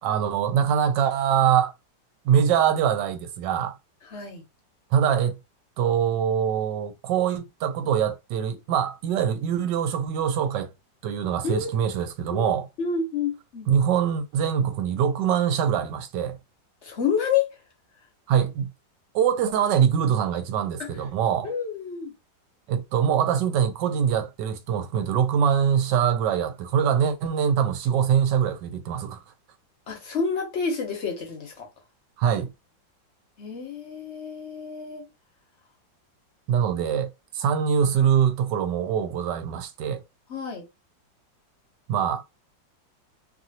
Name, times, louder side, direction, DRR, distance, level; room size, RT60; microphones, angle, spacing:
voice 1, 0.0-1.7 2.2-3.8 4.9-5.3 5.8-10.7 11.0-12.7 13.7-16.4 18.3-18.7 19.1-21.5 22.7-29.2 32.2-32.5 36.5-40.0 41.9-42.2, right 8 dB, 75° right, 1.2 m, -23 dB
voice 2, 4.1-4.4 11.4-11.7 12.3-13.7 16.8-17.5 20.8-20.9 21.4-22.1 29.9-31.7 33.4-35.1 40.3-40.6, left 6 dB, 50° left, 0.9 m, -29 dB
3.0 x 2.5 x 2.8 m
omnidirectional pair, 2.0 m